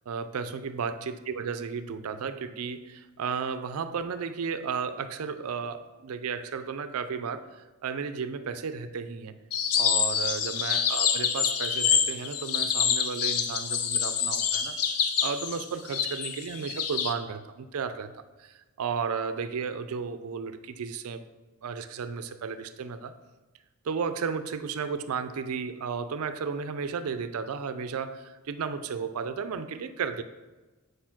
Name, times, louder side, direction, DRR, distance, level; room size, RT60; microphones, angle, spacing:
voice 1, 0.1-9.4 9.8-14.8 15.2-18.1 18.4-21.2 21.6-23.1 23.8-30.2, right 5 dB, 75° right, 11 dB, 0.4 m, -33 dB
sound 1, 9.5-17.1, left 7 dB, 80° left, 0.6 m, -27 dB
5.0 x 4.5 x 5.8 m, 1.2 s
head